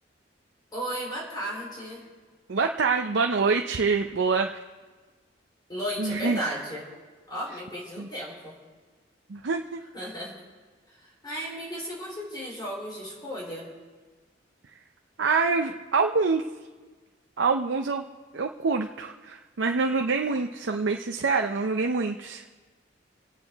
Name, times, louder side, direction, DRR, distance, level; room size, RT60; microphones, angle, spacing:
voice 1, 0.7-2.1 5.7-6.9 7.3-8.6 9.9-10.4 11.0-13.7, equal, 25° left, -4 dB, 3.6 m, -34 dB
voice 2, 2.5-4.6 6.0-6.4 8.0-8.1 9.3-9.8 15.2-16.4 17.4-18.0 18.3-22.4, right 4 dB, 85° right, 4 dB, 0.6 m, -25 dB
26.5 x 9.1 x 3.5 m, 1.4 s
head